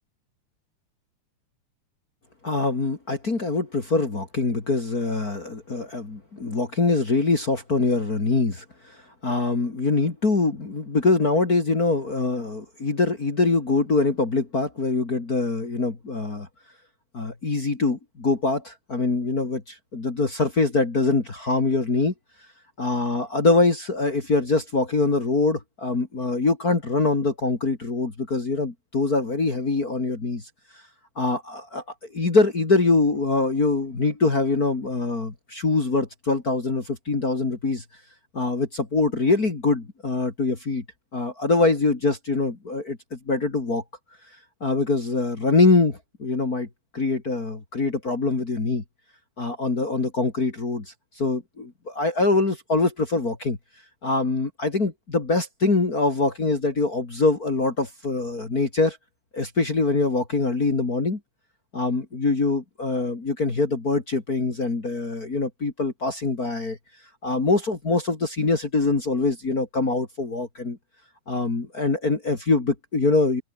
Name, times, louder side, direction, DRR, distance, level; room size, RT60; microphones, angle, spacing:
voice 1, 2.4-9.0 9.2-16.5 17.1-22.1 22.8-30.4 31.2-31.8 32.1-37.8 38.3-40.8 41.1-43.8 44.6-46.7 46.9-48.8 49.4-53.6 54.0-59.0 59.3-61.2 61.7-66.8 67.2-70.8 71.3-73.4, left 3 dB, 30° left, 3.2 m, -24 dB
omnidirectional pair, 3.4 m